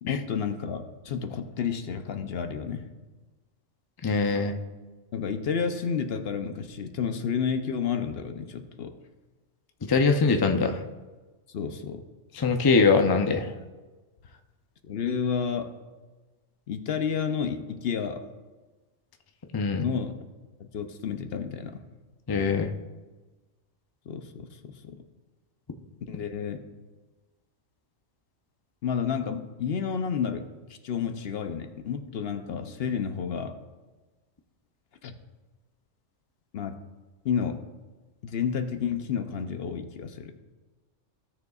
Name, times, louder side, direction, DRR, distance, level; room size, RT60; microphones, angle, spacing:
voice 1, 0.0-2.9 5.1-8.9 11.5-12.0 14.9-15.8 16.7-18.3 19.8-20.1 20.6-21.8 24.1-25.0 26.1-26.6 28.8-33.6 35.0-35.1 36.5-36.8 37.2-37.6 38.2-40.3, left 7 dB, 60° left, 8 dB, 0.8 m, -31 dB
voice 2, 4.0-4.6 9.8-10.8 12.3-13.5 19.5-19.9 22.3-22.7, left 4 dB, 35° left, 5 dB, 0.3 m, -22 dB
16.0 x 6.6 x 2.4 m, 1.2 s
omnidirectional pair, 1.3 m